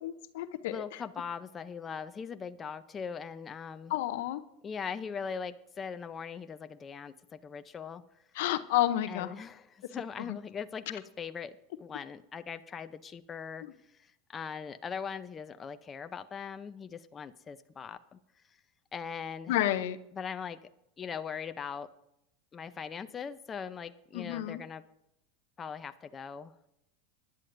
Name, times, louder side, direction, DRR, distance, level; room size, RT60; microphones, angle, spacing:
voice 1, 0.0-1.0 3.9-4.4 8.3-9.3 10.3-10.4 19.5-20.0 24.1-24.6, left 13 dB, 70° left, 11 dB, 0.7 m, -30 dB
voice 2, 0.7-3.9 4.6-8.0 9.1-13.6 14.0-18.2 18.9-19.5 20.1-20.6 21.0-21.9 22.5-24.8 25.6-26.7, left 6 dB, 25° left, 11 dB, 0.6 m, -40 dB
20.0 x 10.5 x 2.6 m, 0.82 s
hypercardioid pair, 105°, 0 cm